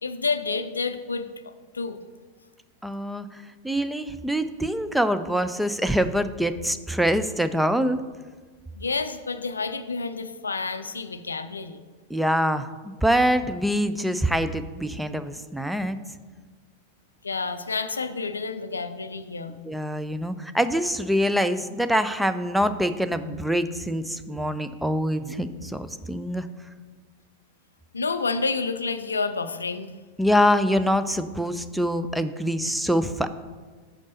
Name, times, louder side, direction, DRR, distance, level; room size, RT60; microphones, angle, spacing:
voice 1, 0.0-2.0 8.7-11.8 17.2-19.6 27.9-29.9, left 4 dB, 75° left, 10 dB, 0.4 m, -29 dB
voice 2, 2.8-3.3 3.6-8.0 12.1-16.0 19.6-26.5 30.2-33.3, equal, ahead, 10 dB, 0.3 m, -24 dB
5.2 x 5.0 x 6.5 m, 1.4 s
figure-of-eight pair, 90°, 0 cm